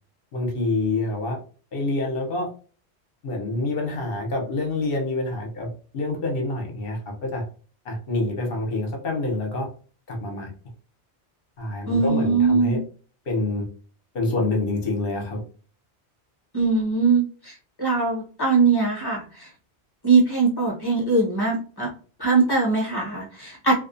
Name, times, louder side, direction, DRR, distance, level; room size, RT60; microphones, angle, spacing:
voice 1, 0.3-1.4 1.7-2.5 3.2-7.4 7.8-9.7 10.1-10.5 11.6-12.8 13.3-13.7 14.1-15.4, left 2 dB, 55° left, 1 dB, 1.0 m, -27 dB
voice 2, 11.9-12.8 16.5-19.5 20.0-21.9 22.2-23.7, right 4 dB, 25° left, -3 dB, 0.9 m, -21 dB
2.5 x 2.3 x 2.5 m, 0.41 s
omnidirectional pair, 1.1 m